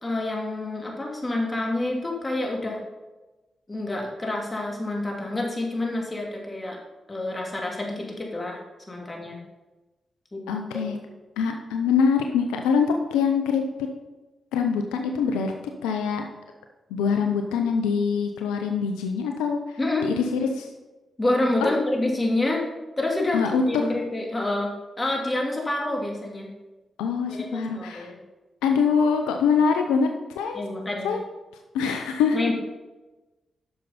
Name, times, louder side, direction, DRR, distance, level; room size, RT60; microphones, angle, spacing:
voice 1, 0.0-2.8 3.7-6.8 7.1-8.6 8.9-9.4 10.3-10.4 10.7-11.0 19.8-20.1 21.2-22.6 23.0-24.7 25.0-26.5 27.3-28.2 30.5-31.1 32.3-32.5, left 2 dB, 30° left, 0 dB, 2.6 m, -27 dB
voice 2, 10.5-11.0 11.4-13.9 14.5-16.3 16.9-20.7 21.6-21.7 23.3-23.9 27.0-28.1 28.6-30.6 31.0-31.2 31.7-32.5, left 6 dB, 90° left, 4 dB, 0.5 m, -24 dB
9.5 x 6.7 x 4.1 m, 1.1 s
hypercardioid pair, 40°, 0 cm